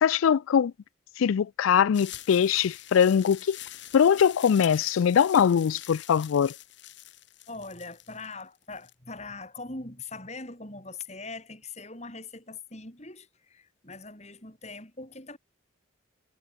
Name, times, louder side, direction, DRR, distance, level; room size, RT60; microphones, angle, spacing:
voice 1, 0.0-0.7 1.2-3.6 3.9-6.5, left 7 dB, 80° left, 0.4 m, -22 dB
sound 1, 1.9-8.9, left 14 dB, 60° left, 1.6 m, -45 dB
voice 2, 7.5-15.4, left 3 dB, 35° left, 6.7 m, -41 dB
head